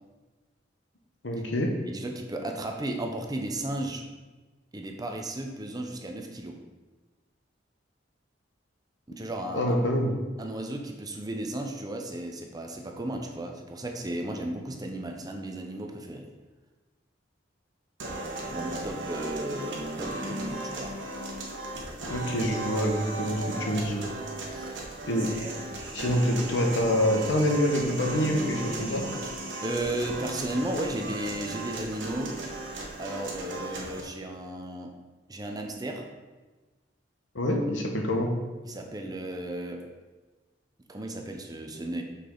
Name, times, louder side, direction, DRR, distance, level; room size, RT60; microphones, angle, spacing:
voice 1, 1.2-1.7 9.5-10.1 22.1-24.0 25.1-25.3 25.9-29.0 37.3-38.3, equal, 70° left, 2 dB, 1.1 m, -26 dB
voice 2, 1.9-4.0 4.7-6.6 9.1-9.8 10.4-16.3 18.5-21.0 24.5-24.8 29.2-29.3 29.6-32.4 33.0-34.9 35.3-36.0 38.6-39.8 40.9-42.0, right 1 dB, 20° right, 3 dB, 0.7 m, -34 dB
sound 1, 18.0-34.0, right 2 dB, 75° right, 1.3 m, -36 dB
6.2 x 5.9 x 3.8 m, 1.2 s
head